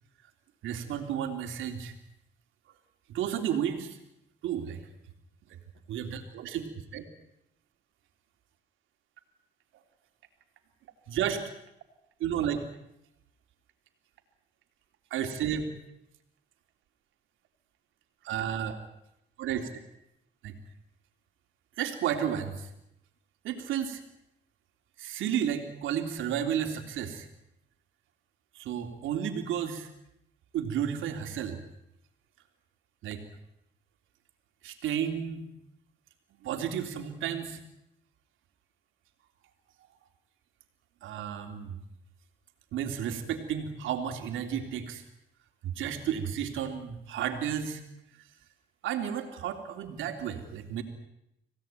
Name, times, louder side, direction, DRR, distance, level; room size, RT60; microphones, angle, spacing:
voice 1, 0.6-1.9 3.1-4.0 4.4-4.8 5.5-5.6 5.9-7.0 11.1-11.4 12.2-12.7 15.1-15.6 18.2-18.8 19.4-19.8 20.4-20.6 21.8-22.7 23.4-24.0 25.0-27.3 28.5-29.9 30.5-31.6 33.0-33.2 34.6-35.5 36.4-37.6 41.0-41.8 42.7-45.0 45.6-47.8 48.8-50.8, right 9 dB, 85° right, 5 dB, 3.5 m, -32 dB
26.5 x 17.5 x 9.3 m, 0.84 s
cardioid pair, 90°, 20 cm